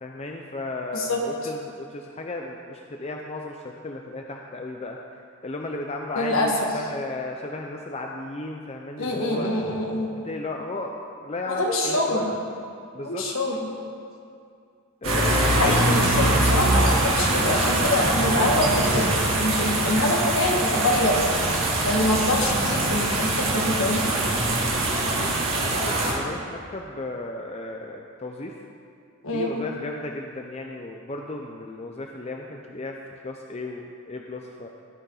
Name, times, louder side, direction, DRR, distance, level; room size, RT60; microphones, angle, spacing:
voice 1, 0.0-5.0 5.4-9.5 10.2-10.9 11.2-12.3 12.9-13.3 15.0-15.8 25.0-28.6 29.3-33.0 33.2-34.7, left 2 dB, 30° left, 2 dB, 0.5 m, -34 dB
voice 2, 6.1-6.5 9.0-10.1 11.5-12.3 13.0-13.7 15.3-21.3 21.8-24.1 29.2-29.5, left 1 dB, 65° left, 0 dB, 1.7 m, -25 dB
sound 1, 15.0-26.1, right 2 dB, 70° right, 2.3 m, -23 dB
17.5 x 6.9 x 3.9 m, 2.3 s
head